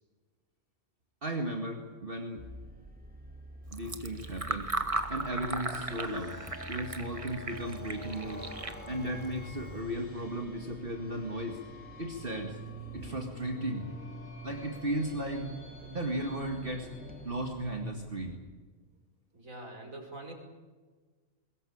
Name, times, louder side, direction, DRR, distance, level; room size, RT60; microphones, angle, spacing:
voice 1, 1.2-2.5 3.7-4.7 5.1-6.4 6.7-8.5 8.9-11.6 12.0-13.9 14.4-15.6 15.9-16.9 17.2-18.4, right 1 dB, 40° right, 2 dB, 2.3 m, -35 dB
sound 1, 2.4-18.4, right 1 dB, 5° right, 2.3 m, -47 dB
Fill (with liquid), 3.6-9.8, right 2 dB, 25° right, 1.4 m, -38 dB
sound 2, 5.2-17.7, left 1 dB, 80° left, 5.0 m, -51 dB
voice 2, 19.3-20.3, right 2 dB, 75° right, 2 dB, 5.6 m, -44 dB
22.5 x 21.0 x 8.7 m, 1.4 s
omnidirectional pair, 1.4 m